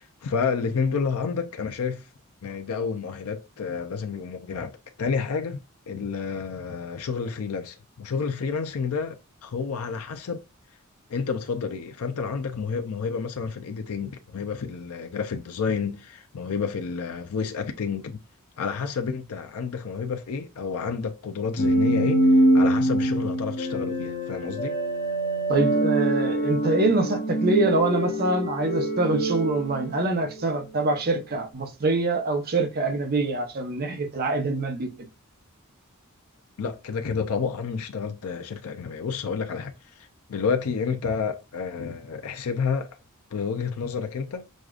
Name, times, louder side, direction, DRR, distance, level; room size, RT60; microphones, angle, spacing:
voice 1, 0.0-2.1 2.4-4.7 5.0-10.4 11.1-18.2 18.6-24.7 36.6-42.9 43.3-44.4, left 5 dB, 90° left, 0.5 m, -30 dB
sound 1, 21.6-30.5, right 1 dB, 45° left, 1.1 m, -24 dB
voice 2, 25.5-34.9, right 2 dB, 45° right, 0.8 m, -25 dB
6.3 x 2.4 x 2.4 m
head